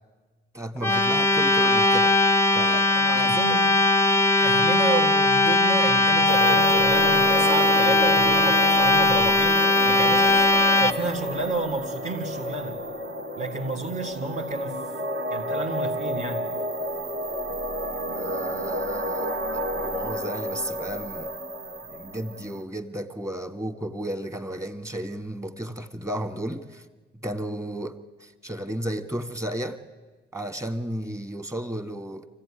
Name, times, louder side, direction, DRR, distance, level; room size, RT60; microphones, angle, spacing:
voice 1, 0.5-2.1 2.5-3.6 18.2-21.3 21.9-26.8 27.2-29.8 30.3-32.3, right 1 dB, 15° right, 8 dB, 1.7 m, -33 dB
sound 1, 0.8-10.9, left 2 dB, 15° left, 0.7 m, -19 dB
voice 2, 2.9-3.9 4.4-12.8 13.4-14.8 15.3-16.5, right 2 dB, 40° right, -1 dB, 1.8 m, -31 dB
sound 2, 6.3-22.6, equal, 65° right, 2.3 m, -31 dB
24.5 x 15.5 x 9.9 m, 1.3 s
cardioid pair, 90°, 20 cm